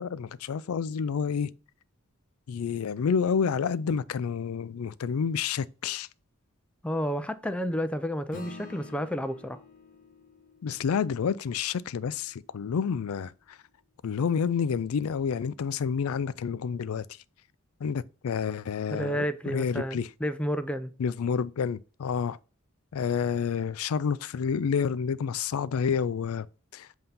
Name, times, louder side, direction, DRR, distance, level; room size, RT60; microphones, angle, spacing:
voice 1, 0.0-1.5 2.5-6.1 10.6-13.3 14.0-17.0 17.8-19.2 19.5-20.1 21.0-22.4 22.9-26.5 26.7-26.9, left 6 dB, 80° left, 0.4 m, -29 dB
voice 2, 6.8-9.6 18.9-20.9, equal, 5° left, 0.4 m, -31 dB
Acoustic guitar / Strum, 8.3-13.1, left 1 dB, 40° left, 0.8 m, -48 dB
7.7 x 2.8 x 5.3 m
head